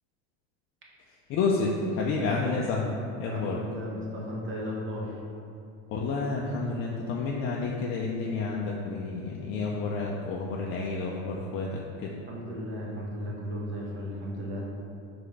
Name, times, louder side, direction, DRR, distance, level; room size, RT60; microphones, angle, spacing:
voice 1, 1.3-3.6 5.9-12.2, left 3 dB, 35° left, -2 dB, 0.4 m, -30 dB
voice 2, 3.3-5.2 12.3-14.7, equal, 30° right, -3 dB, 1.0 m, -35 dB
4.7 x 3.5 x 3.2 m, 2.5 s
supercardioid pair, 115°, 39 cm